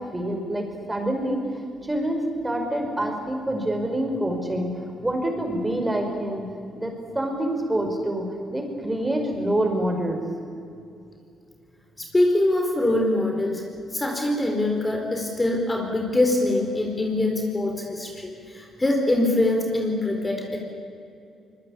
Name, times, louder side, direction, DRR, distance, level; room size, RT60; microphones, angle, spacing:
voice 1, 0.0-1.5 1.8-6.5 6.8-10.2, right 1 dB, 15° right, 3 dB, 5.6 m, -26 dB
voice 2, 12.0-13.6 13.9-20.6, left 1 dB, 20° left, 2 dB, 4.3 m, -23 dB
25.0 x 21.5 x 8.7 m, 2.5 s
cardioid pair, 90°, 0 cm